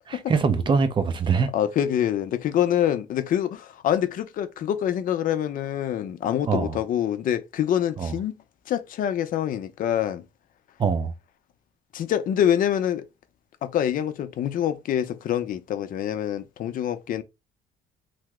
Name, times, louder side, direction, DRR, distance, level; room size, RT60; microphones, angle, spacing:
voice 1, 0.1-1.5 6.5-6.8 8.0-8.1 10.8-11.1, right 5 dB, 30° right, 0.5 m, -23 dB
voice 2, 1.5-10.2 11.9-13.0 13.6-17.2, left 10 dB, 55° left, 0.5 m, -25 dB
2.9 x 2.0 x 3.5 m
cardioid pair, 110°, 17 cm